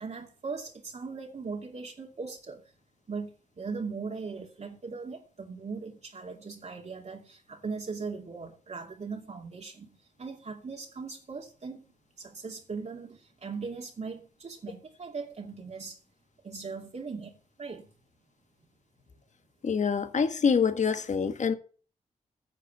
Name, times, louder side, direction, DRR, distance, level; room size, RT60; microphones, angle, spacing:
voice 1, 0.0-2.6 3.1-11.8 12.2-16.0 16.4-17.9, right 4 dB, 55° right, 2.5 m, -39 dB
voice 2, 19.6-21.5, left 6 dB, 60° left, 1.5 m, -25 dB
10.0 x 6.6 x 8.1 m
cardioid pair, 55°, 14 cm